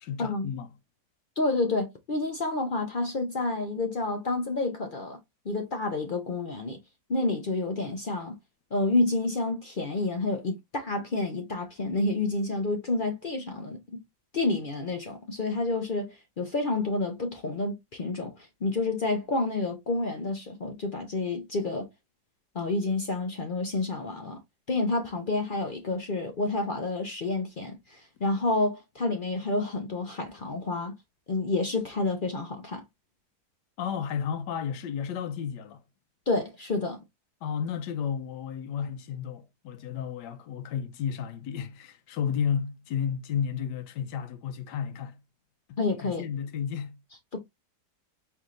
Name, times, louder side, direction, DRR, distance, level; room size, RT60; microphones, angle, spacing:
voice 1, 0.0-0.7 33.8-35.8 37.4-45.2 45.7-47.0, left 7 dB, 90° left, 1.2 m, -32 dB
voice 2, 1.4-5.2 5.5-6.8 7.1-8.4 8.7-13.8 14.3-18.3 18.6-21.9 22.5-24.4 24.7-30.9 31.3-32.8 36.3-37.0 45.8-46.3 47.3-47.4, left 2 dB, 55° left, 0.5 m, -29 dB
4.5 x 3.5 x 2.4 m
omnidirectional pair, 1.8 m